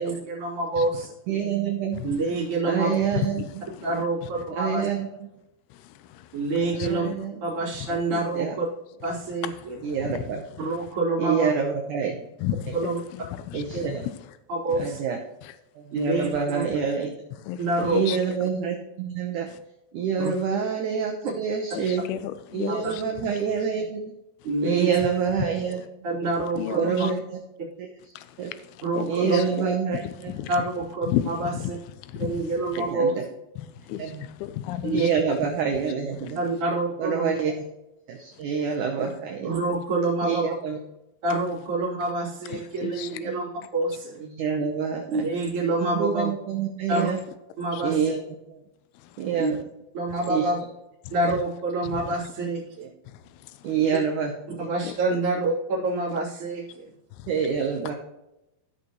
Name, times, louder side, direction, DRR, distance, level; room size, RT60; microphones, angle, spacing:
voice 1, 0.0-1.1 2.0-3.0 3.8-4.9 6.3-7.1 7.4-8.7 9.0-9.5 10.6-11.5 12.7-13.0 13.7-13.8 14.5-15.0 15.9-16.6 17.6-18.0 20.2-20.3 22.7-22.9 24.4-24.9 26.0-27.1 28.8-29.4 30.5-31.8 32.3-33.2 34.8-35.1 36.4-37.3 39.4-40.5 41.2-44.3 45.1-46.3 46.9-47.1 47.6-48.0 49.4-49.5 49.9-50.6 51.1-52.9 53.8-54.0 54.6-56.9, right 2 dB, 35° right, 4.0 m, -27 dB
voice 2, 1.3-2.0 2.6-3.4 4.6-5.1 6.7-7.4 8.3-8.6 9.8-10.4 11.2-12.2 13.5-14.0 14.8-15.2 15.8-17.1 17.8-19.5 19.9-22.0 22.5-24.0 24.6-25.8 26.8-27.4 27.8-27.9 28.4-28.5 29.1-30.3 32.8-33.2 34.0-34.2 34.9-36.4 37.0-37.5 38.1-39.5 40.2-40.8 43.2-43.3 44.3-45.2 45.9-47.2 47.8-48.2 48.5-48.6 49.2-49.6 50.3-50.5 52.8-52.9 53.6-54.7 57.3-57.9, right 6 dB, 85° right, 1.8 m, -27 dB
voice 3, 3.1-3.9 5.7-7.1 7.8-8.3 9.6-10.9 12.4-14.4 14.7-14.9 15.4-15.6 17.4-18.4 19.5-19.6 20.3-20.4 21.7-23.3 25.4-25.5 25.8-25.9 26.6-27.1 28.2-29.7 29.9-30.6 31.1-32.8 33.6-35.1 35.9-36.4 38.3-38.4 39.0-39.2 42.5-43.2 46.9-47.0 47.7-47.8 48.9-49.3 51.1-51.4 51.8-52.3 53.1-53.8 54.8-55.2 57.1-57.4 57.9-58.0, left 12 dB, 80° left, 2.4 m, -35 dB
15.5 x 6.1 x 3.1 m
omnidirectional pair, 4.9 m